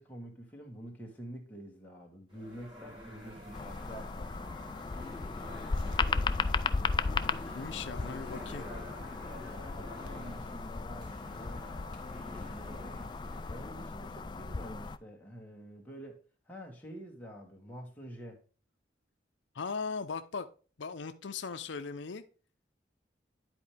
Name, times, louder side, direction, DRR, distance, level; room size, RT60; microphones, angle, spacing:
voice 1, 0.0-4.8 9.5-11.6 12.3-13.1 13.5-18.4, equal, 10° left, 1.7 m, -48 dB
sound 1, 2.3-13.9, left 1 dB, 25° right, 2.3 m, -48 dB
sound 2, 3.5-15.0, left 4 dB, 25° left, 0.3 m, -36 dB
voice 2, 7.0-8.7 19.5-20.5 20.8-22.2, left 5 dB, 80° left, 0.6 m, -39 dB
11.0 x 4.5 x 3.3 m
head